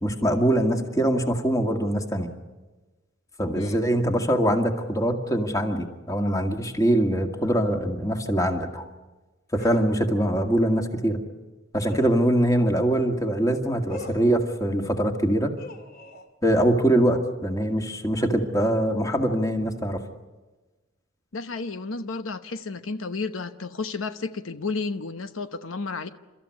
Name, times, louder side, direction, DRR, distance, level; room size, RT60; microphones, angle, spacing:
voice 1, 0.0-2.3 3.4-8.9 9.5-11.2 11.7-15.5 16.4-20.0, right 1 dB, 15° left, 4 dB, 2.1 m, -23 dB
sound 1, 9.6-9.9 11.9-12.2 13.9-14.3 15.6-16.3, left 1 dB, 45° left, 2.6 m, -41 dB
voice 2, 21.3-26.1, left 4 dB, 75° left, 9 dB, 1.0 m, -32 dB
30.0 x 14.0 x 9.7 m, 1.2 s
head